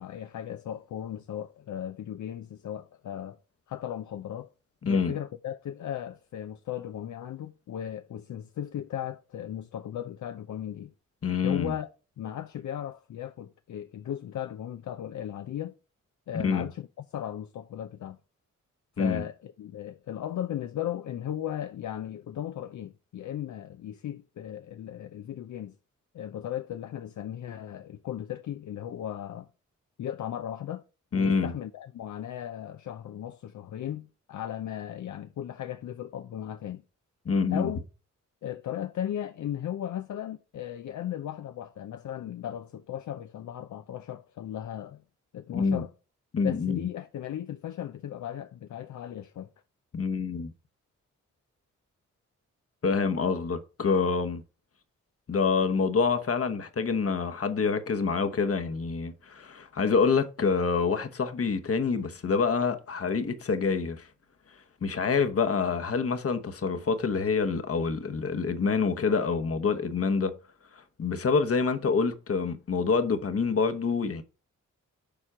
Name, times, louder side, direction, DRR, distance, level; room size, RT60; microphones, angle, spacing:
voice 1, 0.0-3.4 3.7-4.5 4.9-10.9 11.4-11.9 12.2-15.8 16.3-18.2 19.0-25.8 26.1-29.5 30.0-30.8 31.1-36.8 37.5-37.8 38.4-45.0 45.3-45.9 46.4-49.5, left 11 dB, 70° left, 0.5 m, -36 dB
voice 2, 4.8-5.1 11.2-11.7 16.4-16.7 19.0-19.2 31.1-31.5 37.2-37.7 45.5-45.8 46.3-46.8 49.9-50.5 52.8-54.4 55.3-64.1 64.8-70.3 71.0-74.2, left 5 dB, 50° left, 1.0 m, -26 dB
7.1 x 4.4 x 4.9 m
cardioid pair, 60°, 31 cm